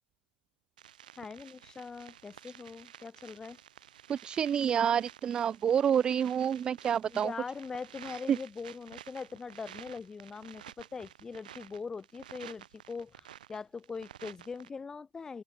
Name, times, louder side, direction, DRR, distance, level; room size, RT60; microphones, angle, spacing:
sound 1, 0.8-14.7, right 11 dB, 60° right, 4.1 m, -52 dB
voice 1, 1.2-3.6 7.1-15.4, left 5 dB, 10° left, 5.6 m, -42 dB
voice 2, 4.1-7.3 8.3-8.4, right 8 dB, 15° right, 0.4 m, -28 dB
figure-of-eight pair, 110°, 5 cm